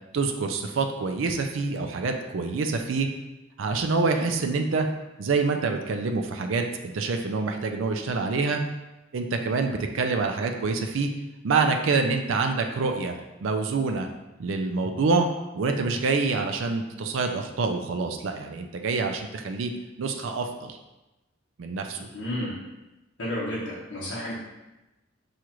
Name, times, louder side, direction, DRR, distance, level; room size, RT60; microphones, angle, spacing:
voice 1, 0.1-3.1 3.6-4.9 5.2-8.6 9.1-11.1 11.4-13.1 13.4-14.1 14.4-15.3 15.5-19.7 20.0-20.8 21.6-22.1, right 4 dB, 75° right, 5 dB, 0.4 m, -26 dB
voice 2, 21.9-22.5 23.2-24.3, left 1 dB, 80° left, -8 dB, 1.1 m, -32 dB
6.2 x 2.4 x 2.9 m, 1.0 s
head